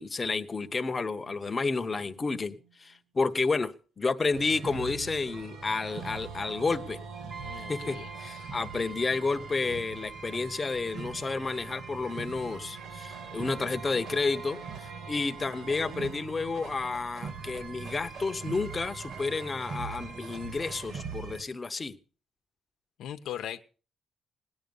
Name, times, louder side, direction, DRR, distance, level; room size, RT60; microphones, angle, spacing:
voice 1, 0.0-7.0 7.7-22.0, left 4 dB, 20° left, 8 dB, 0.9 m, -31 dB
sound 1, 0.5-2.9 5.2-9.3 11.5-17.7, right 6 dB, 75° right, 3.6 m, -50 dB
sound 2, 4.3-21.4, right 5 dB, 55° right, 1.6 m, -43 dB
Brass instrument, 7.3-20.9, right 5 dB, 10° right, 0.8 m, -48 dB
voice 2, 7.4-8.5 23.0-23.6, left 10 dB, 85° left, 7 dB, 0.9 m, -40 dB
18.0 x 10.5 x 5.3 m, 0.38 s
cardioid pair, 170°, 0 cm